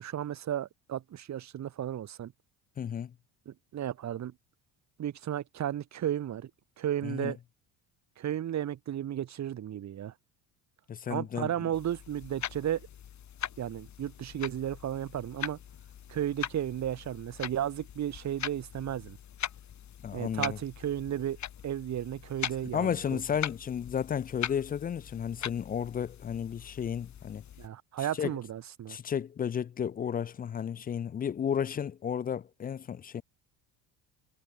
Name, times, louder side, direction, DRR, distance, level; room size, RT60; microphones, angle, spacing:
voice 1, 0.0-2.3 3.5-4.3 5.0-6.5 6.8-7.4 8.2-10.1 11.1-12.8 13.6-15.6 16.1-19.2 20.1-21.4 21.6-23.2 27.6-29.0, right 11 dB, 40° right, 1.8 m, -34 dB
voice 2, 2.8-3.1 7.0-7.3 10.9-11.5 20.0-20.6 22.7-27.4 28.2-28.4 28.9-33.2, left 8 dB, 20° left, 0.4 m, -33 dB
sound 1, 11.7-27.7, left 9 dB, 40° left, 4.8 m, -41 dB
cardioid pair, 130°, 42 cm